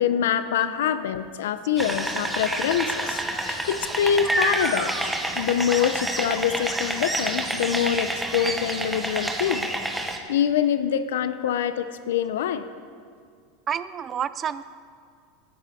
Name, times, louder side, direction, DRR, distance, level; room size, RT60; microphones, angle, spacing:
voice 1, 0.0-9.7 10.0-12.7, left 9 dB, 90° left, 12 dB, 0.5 m, -25 dB
sound 1, 1.8-10.2, right 1 dB, 5° right, 1.0 m, -28 dB
voice 2, 13.7-14.6, right 8 dB, 30° right, 15 dB, 0.4 m, -29 dB
13.5 x 10.5 x 4.2 m, 2.2 s
supercardioid pair, 130°, 0 cm